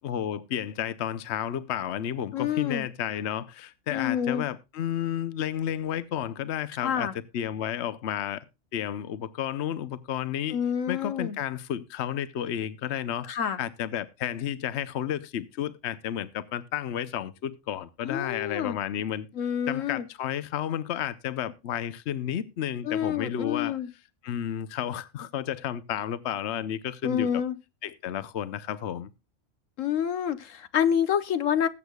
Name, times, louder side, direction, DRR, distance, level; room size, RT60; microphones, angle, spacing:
voice 1, 0.0-7.1 7.3-8.4 8.7-10.6 10.9-13.3 13.6-19.3 19.7-23.8 24.2-27.4 27.8-29.1, left 10 dB, 65° left, 1.0 m, -32 dB
voice 2, 2.3-2.9 3.9-4.4 6.8-7.1 10.5-11.4 13.3-13.6 18.0-18.8 19.3-20.0 22.8-23.9 27.0-27.5 29.8-31.7, left 9 dB, 80° left, 1.3 m, -27 dB
20.5 x 8.2 x 2.3 m
omnidirectional pair, 1.3 m